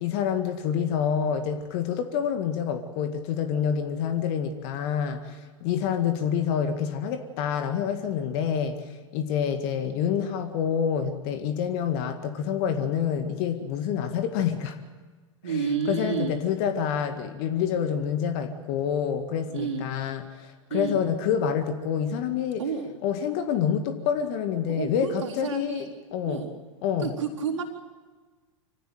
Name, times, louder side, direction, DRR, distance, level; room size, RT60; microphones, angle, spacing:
voice 1, 0.0-14.8 15.9-22.6 23.0-26.4 26.8-27.1, left 8 dB, 50° left, 7 dB, 2.0 m, -27 dB
voice 2, 15.4-16.3 19.5-19.9 20.7-21.0 22.6-23.0 24.7-25.9 26.3-26.5 27.0-27.6, right 5 dB, 70° right, -2 dB, 4.1 m, -30 dB
25.5 x 17.0 x 9.3 m, 1.3 s
figure-of-eight pair, 90°, 17 cm